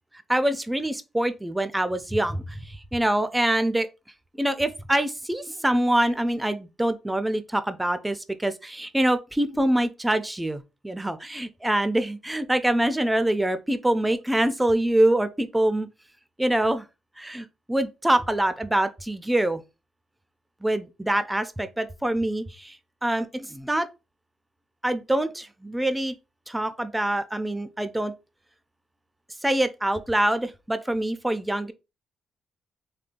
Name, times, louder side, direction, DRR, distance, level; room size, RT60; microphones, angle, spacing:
voice 1, 0.3-3.9 4.4-15.9 16.4-16.9 17.2-19.6 20.6-22.8 23.0-23.9 24.8-26.1 26.5-28.1 29.4-31.7, right 1 dB, 10° right, 0.4 m, -25 dB
3.7 x 2.2 x 2.4 m
cardioid pair, 90°, 0 cm